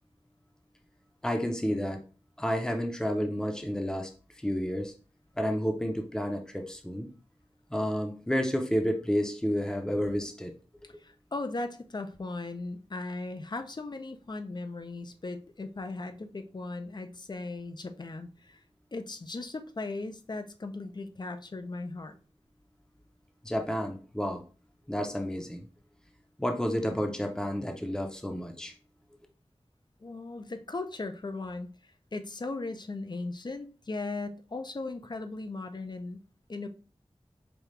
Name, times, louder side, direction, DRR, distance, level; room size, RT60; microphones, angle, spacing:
voice 1, 1.2-2.0 2.4-4.1 4.4-4.9 5.4-7.1 7.7-10.5 23.4-24.4 24.9-25.6 26.4-28.7, equal, 5° left, 0.7 m, -30 dB
voice 2, 10.8-18.6 18.9-22.2 30.0-36.2 36.5-36.7, left 3 dB, 45° left, 0.5 m, -38 dB
5.2 x 2.3 x 3.2 m
wide cardioid pair, 50°, 11 cm